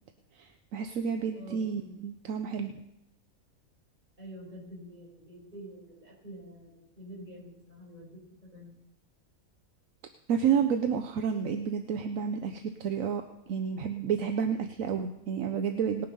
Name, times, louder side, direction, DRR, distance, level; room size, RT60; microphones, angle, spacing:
voice 1, 0.3-2.7 10.3-16.1, right 7 dB, 75° right, 7 dB, 1.1 m, -30 dB
voice 2, 1.3-1.9 4.2-8.1 8.4-8.7, equal, 30° right, -5 dB, 4.9 m, -47 dB
19.5 x 6.7 x 5.4 m, 0.88 s
omnidirectional pair, 1.5 m